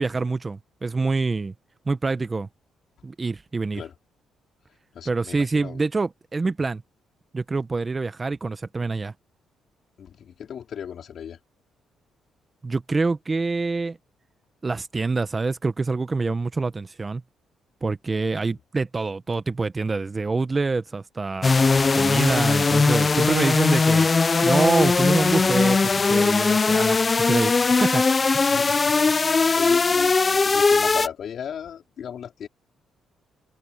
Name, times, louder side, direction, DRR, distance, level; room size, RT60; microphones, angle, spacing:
voice 1, 0.0-1.5 1.9-2.5 3.0-3.8 5.1-6.8 7.3-9.1 12.6-14.0 14.6-17.2 17.8-24.1 24.4-27.5 27.8-28.0 28.3-28.4, right 3 dB, 25° right, 1.1 m, -26 dB
voice 2, 4.9-5.8 10.0-11.4 18.3-18.5 28.5-32.5, left 8 dB, 60° left, 4.7 m, -37 dB
sound 1, 21.4-31.1, left 4 dB, 30° left, 0.4 m, -19 dB
cardioid pair, 90°, 0 cm